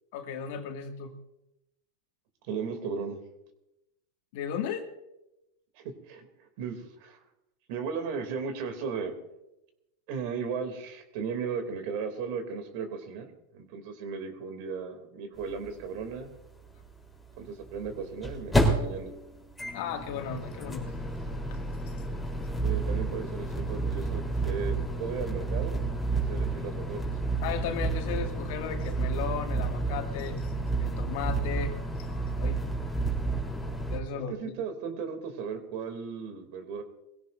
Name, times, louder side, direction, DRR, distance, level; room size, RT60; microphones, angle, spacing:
voice 1, 0.1-1.1 4.3-4.9 19.7-20.9 27.4-30.5 30.8-32.6 33.9-34.3, left 7 dB, 60° left, 3 dB, 2.1 m, -35 dB
voice 2, 2.5-3.2 5.7-7.2 7.7-9.1 10.1-16.4 17.4-19.1 22.6-25.8 26.1-27.0 34.1-36.8, right 5 dB, 60° right, 6 dB, 2.8 m, -36 dB
sound 1, 15.4-15.5 15.7-15.8 17.7-34.0, right 2 dB, 5° left, 3.7 m, -30 dB
22.0 x 16.5 x 2.6 m, 0.90 s
hypercardioid pair, 110°, 0 cm